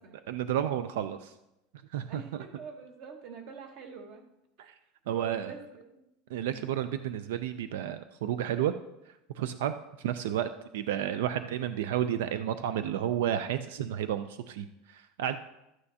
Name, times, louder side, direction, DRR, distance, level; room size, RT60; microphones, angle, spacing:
voice 1, 0.3-1.3 1.9-2.4 4.6-4.7 5.1-5.5 6.3-8.7 9.4-15.4, right 10 dB, 90° right, 11 dB, 0.4 m, -31 dB
voice 2, 2.1-4.2 4.6-4.7 5.1-6.1 6.4-6.7 11.0-11.1, right 5 dB, 40° right, 5 dB, 1.2 m, -46 dB
12.5 x 8.8 x 2.8 m, 0.90 s
supercardioid pair, 175°, 0 cm